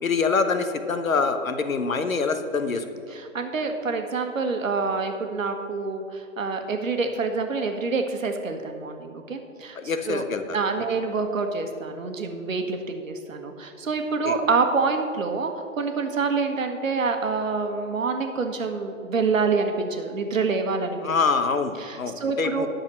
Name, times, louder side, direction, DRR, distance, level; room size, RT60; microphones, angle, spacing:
voice 1, 0.0-2.8 9.7-10.6 14.2-14.4 21.0-22.7, left 4 dB, 80° left, 9 dB, 1.0 m, -25 dB
voice 2, 3.1-9.8 10.1-10.3 10.5-21.1 21.8-22.7, right 4 dB, 75° right, 6 dB, 1.4 m, -27 dB
10.0 x 6.4 x 6.4 m, 2.5 s
figure-of-eight pair, 125°, 40 cm